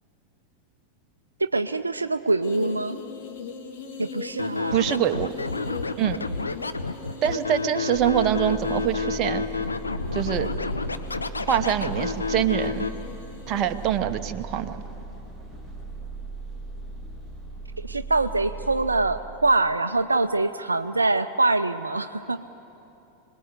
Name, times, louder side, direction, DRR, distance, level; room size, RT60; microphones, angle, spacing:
voice 1, 1.4-3.0 4.0-4.8 17.8-22.5, right 2 dB, 80° right, 10 dB, 0.6 m, -24 dB
sound 1, 2.4-14.0, left 5 dB, 50° left, 2.6 m, -41 dB
Scratching (performance technique), 4.4-12.9, left 4 dB, 80° left, 1.0 m, -29 dB
voice 2, 4.7-5.3 6.0-6.2 7.2-9.4 10.1-10.5 11.4-12.9 13.5-14.8, right 11 dB, 35° right, 8 dB, 1.1 m, -24 dB
sound 2, 7.9-19.2, right 3 dB, 10° left, 3.2 m, -38 dB
27.0 x 20.0 x 8.1 m, 2.8 s
figure-of-eight pair, 90°, 0 cm